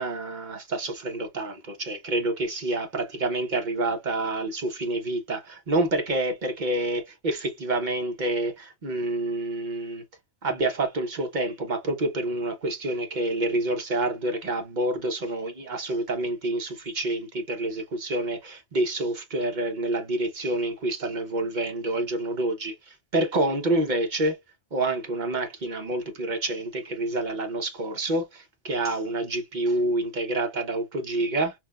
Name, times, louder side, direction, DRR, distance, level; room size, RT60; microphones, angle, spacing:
voice 1, 0.0-10.0 10.4-24.4 24.7-31.5, right 2 dB, 45° right, 1.0 m, -28 dB
5.8 x 2.2 x 2.3 m
omnidirectional pair, 1.1 m